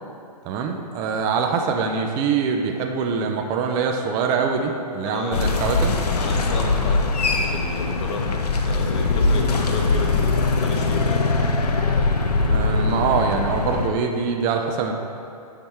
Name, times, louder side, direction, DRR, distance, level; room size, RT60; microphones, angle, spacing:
voice 1, 0.5-6.0 12.4-14.9, right 5 dB, 20° right, 3 dB, 0.4 m, -24 dB
voice 2, 5.0-5.5 6.1-8.4 8.6-11.2, left 3 dB, 45° left, 0 dB, 1.1 m, -32 dB
sound 1, 5.3-13.9, left 3 dB, 80° left, 0.8 m, -21 dB
10.5 x 3.5 x 4.3 m, 2.5 s
hypercardioid pair, 140°, 20 cm